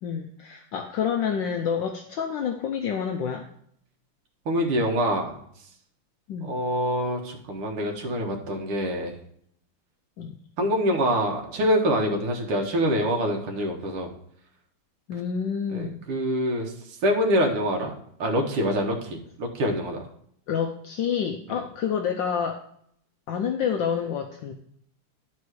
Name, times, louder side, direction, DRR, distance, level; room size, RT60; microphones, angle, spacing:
voice 1, 0.0-3.5 6.3-6.5 10.2-10.4 15.1-16.0 20.5-22.7 23.3-24.5, left 7 dB, 70° left, 4 dB, 1.2 m, -28 dB
voice 2, 4.5-5.4 6.4-9.2 10.6-14.1 15.7-16.7 17.0-17.9 18.2-20.0 21.5-21.6, equal, 85° right, 1 dB, 2.3 m, -25 dB
12.0 x 4.3 x 4.7 m, 0.67 s
omnidirectional pair, 2.4 m